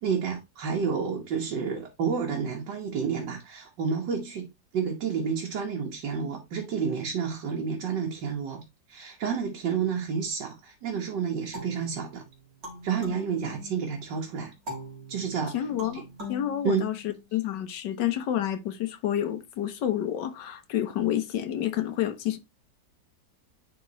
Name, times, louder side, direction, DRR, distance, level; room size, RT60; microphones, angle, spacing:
voice 1, 0.0-4.5 4.7-8.6 8.9-12.2 12.8-14.5 15.1-15.6 15.9-16.0 16.6-16.9, right 6 dB, 90° right, 1.8 m, -30 dB
sound 1, 11.5-14.0 14.7-17.5, left 2 dB, 55° right, 3.0 m, -42 dB
voice 2, 15.5-16.0 16.3-22.4, left 11 dB, 85° left, 1.5 m, -29 dB
10.0 x 3.7 x 3.0 m
omnidirectional pair, 1.9 m